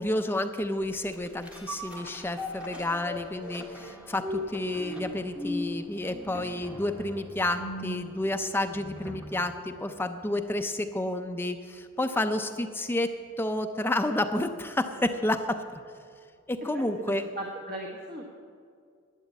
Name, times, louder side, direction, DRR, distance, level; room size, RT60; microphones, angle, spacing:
voice 1, 0.0-15.8 16.5-17.2, left 1 dB, 10° left, 7 dB, 0.4 m, -30 dB
sound 1, 0.9-9.5 9.9-10.0, left 1 dB, 5° right, 1.6 m, -39 dB
voice 2, 16.7-18.3, right 1 dB, 40° right, 0 dB, 1.2 m, -38 dB
11.0 x 9.0 x 8.3 m, 2.2 s
head